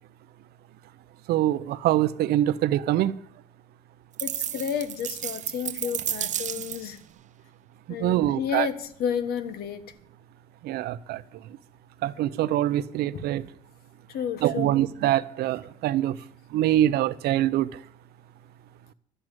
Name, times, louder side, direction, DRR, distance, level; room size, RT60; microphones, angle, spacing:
voice 1, 1.3-3.1 8.0-8.7 10.6-11.2 12.0-13.5 14.4-16.2 16.5-17.7, right 13 dB, 85° right, 0.6 m, -24 dB
voice 2, 4.2-7.0 7.9-9.8 13.1-13.2 14.1-14.7, left 8 dB, 75° left, 1.4 m, -31 dB
sound 1, 4.2-7.0, right 10 dB, 50° right, 0.7 m, -32 dB
12.5 x 8.1 x 8.9 m
cardioid pair, 120°, 16 cm